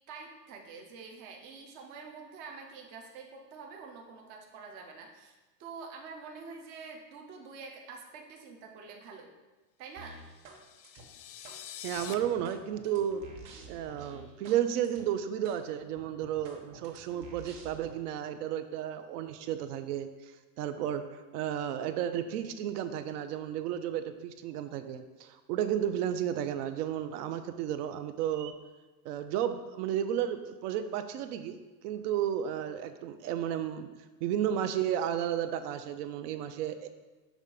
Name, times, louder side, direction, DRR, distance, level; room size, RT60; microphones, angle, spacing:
voice 1, 0.1-9.3 9.8-10.2, right 5 dB, 25° right, 1 dB, 0.3 m, -47 dB
sound 1, 10.0-10.6 10.8-11.6 12.0-14.6 14.8-15.0 15.4-15.6 16.0-17.9, right 3 dB, 45° right, 1.1 m, -50 dB
sound 2, 10.3-12.1, left 10 dB, 75° left, 0.7 m, -46 dB
voice 2, 11.8-13.2 13.7-20.1 20.6-28.5 29.0-31.6 31.8-33.9 34.2-36.9, right 10 dB, 65° right, 9 dB, 0.7 m, -33 dB
6.3 x 3.3 x 5.2 m, 1.2 s
supercardioid pair, 150°, 49 cm